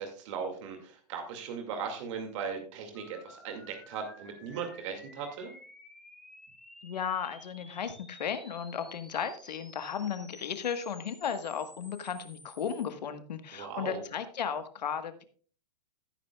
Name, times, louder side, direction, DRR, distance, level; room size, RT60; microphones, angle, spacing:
voice 1, 0.0-5.5 13.5-14.0, right 6 dB, 45° right, 4 dB, 2.3 m, -38 dB
sound 1, 2.9-12.8, left 1 dB, ahead, 1.2 m, -53 dB
voice 2, 6.8-15.2, left 7 dB, 80° left, 9 dB, 1.4 m, -35 dB
13.0 x 10.5 x 2.3 m, 0.42 s
hypercardioid pair, 145°, 21 cm